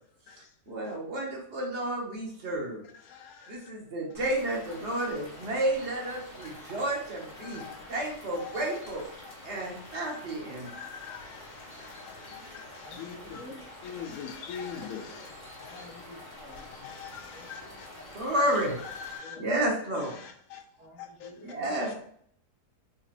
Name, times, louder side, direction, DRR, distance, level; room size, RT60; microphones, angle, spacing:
voice 1, 0.7-2.8 3.5-7.6 7.9-9.0 9.4-10.7 18.1-18.8 19.4-20.2 21.4-21.9, right 1 dB, 55° right, -1 dB, 1.1 m, -31 dB
voice 2, 3.0-3.6 6.4-6.7 7.4-7.8 8.3-8.8 9.9-10.2 10.7-13.5 13.8-15.3 15.6-15.9 16.5-17.9 18.4-18.5 18.8-19.4 20.0-20.6 21.0-21.3 21.8-21.9, left 7 dB, 75° left, 5 dB, 1.0 m, -43 dB
sound 1, 4.1-19.2, left 1 dB, 55° left, 1.9 m, -47 dB
voice 3, 12.8-13.7 15.1-15.3 15.6-16.6 17.3-18.0 19.2-19.5 20.8-21.9, left 1 dB, 30° right, -4 dB, 0.7 m, -51 dB
3.9 x 2.8 x 2.5 m, 0.64 s
omnidirectional pair, 1.6 m